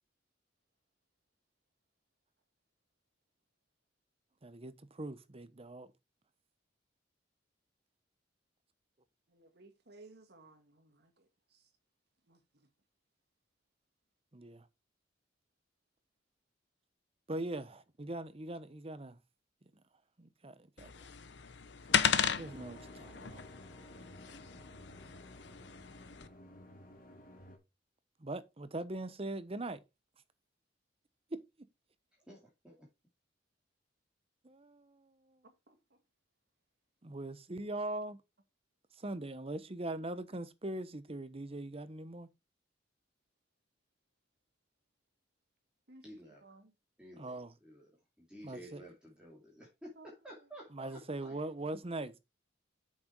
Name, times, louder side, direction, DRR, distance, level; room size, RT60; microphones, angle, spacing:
voice 1, 4.4-4.7 5.0-5.9 14.3-14.6 17.3-17.7 18.0-19.2 20.2-20.9 22.3-23.4 28.2-29.8 34.4-35.4 37.0-38.2 39.0-42.3 47.2-47.5 48.4-48.8 50.7-52.2, right 2 dB, 30° right, 0.9 m, -41 dB
voice 2, 9.3-11.2 12.3-12.4 35.4-35.8 45.9-46.0 46.4-46.7 50.0-50.1, right 2 dB, 60° right, 2.0 m, -58 dB
sound 1, 20.8-26.3, left 7 dB, 65° left, 0.9 m, -36 dB
sound 2, 21.9-27.6, left 1 dB, 50° left, 2.7 m, -54 dB
voice 3, 32.1-32.9 46.0-46.4 47.0-47.9 48.2-51.5, equal, 5° right, 2.6 m, -53 dB
7.8 x 6.5 x 4.6 m
head